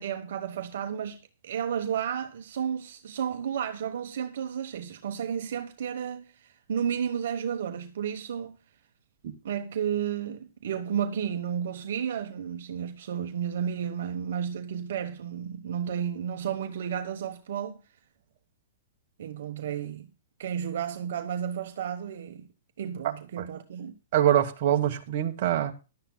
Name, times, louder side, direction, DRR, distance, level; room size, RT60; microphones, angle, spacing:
voice 1, 0.0-6.3 6.7-8.6 9.4-17.8 19.2-20.1 20.4-22.5 22.8-23.9, right 8 dB, 65° right, 1.2 m, -32 dB
voice 2, 24.1-25.7, right 11 dB, 50° right, 1.4 m, -24 dB
16.0 x 11.5 x 2.3 m
hypercardioid pair, 150°, 0 cm